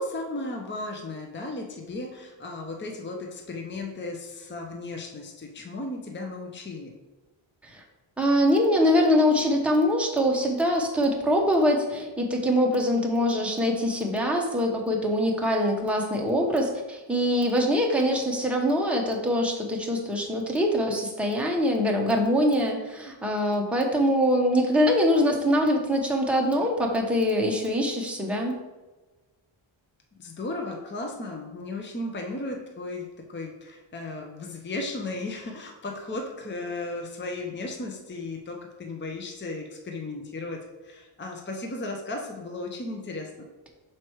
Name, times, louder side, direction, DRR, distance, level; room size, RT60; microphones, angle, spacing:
voice 1, 0.0-6.9 30.2-43.3, left 2 dB, 25° left, 2 dB, 0.7 m, -35 dB
voice 2, 8.2-28.5, equal, ahead, -1 dB, 0.9 m, -23 dB
6.1 x 4.5 x 4.6 m, 1.2 s
wide cardioid pair, 140°, 48 cm